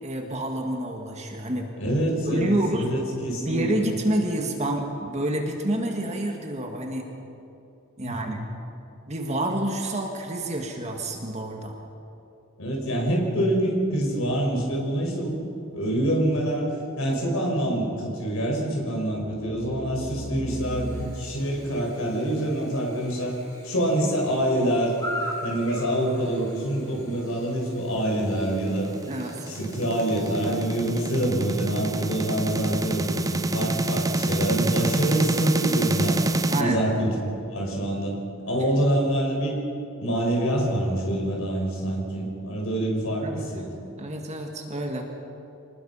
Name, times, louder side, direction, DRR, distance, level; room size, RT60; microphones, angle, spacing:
voice 1, 0.0-1.7 2.3-2.9 3.4-7.1 8.0-8.4 9.1-11.7 29.1-29.5 33.6-33.8 36.5-36.9 43.2-43.5 44.0-45.0, right 1 dB, 30° right, 2 dB, 2.1 m, -28 dB
voice 2, 1.8-3.9 8.0-8.4 12.6-15.3 15.7-16.7 17.0-23.4 23.6-24.9 25.4-28.9 29.5-36.2 36.6-38.1 38.5-39.6 40.0-43.6, right 1 dB, 70° left, -1 dB, 5.6 m, -26 dB
sound 1, 13.9-16.7 19.1-21.1, equal, 50° left, 2.5 m, -39 dB
Chirp tweet / Buzz, 20.4-30.6, left 1 dB, 15° left, 4.7 m, -41 dB
sound 2, 28.5-36.6, right 2 dB, 15° right, 0.6 m, -27 dB
26.0 x 19.5 x 5.8 m, 2.7 s
head